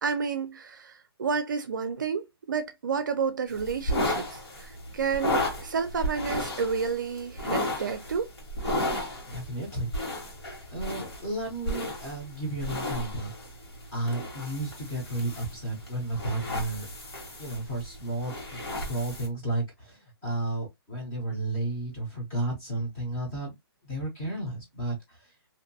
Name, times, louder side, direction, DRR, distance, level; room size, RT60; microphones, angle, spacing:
voice 1, 0.0-4.2 4.6-8.3, right 6 dB, 50° right, 0.5 m, -30 dB
sound 1, 3.5-19.3, left 1 dB, 70° left, 1.4 m, -34 dB
voice 2, 9.3-9.9 10.7-13.3 13.9-16.9 17.4-23.5 23.8-25.0, right 2 dB, 10° left, 0.6 m, -32 dB
2.6 x 2.2 x 2.6 m
hypercardioid pair, 180°, 13 cm